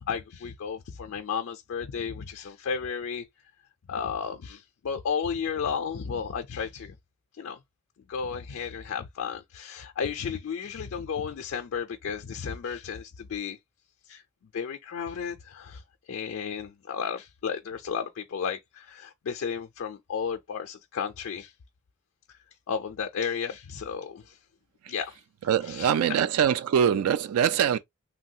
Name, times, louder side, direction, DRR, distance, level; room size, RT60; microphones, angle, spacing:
voice 1, 0.1-3.2 3.9-6.9 7.4-7.6 8.1-13.6 14.1-14.2 14.5-15.8 16.1-21.5 22.7-24.4 24.9-25.2 25.7-25.9, left 6 dB, 60° left, 0.4 m, -33 dB
voice 2, 25.4-27.8, right 8 dB, 70° right, 0.3 m, -23 dB
3.1 x 2.2 x 2.7 m
head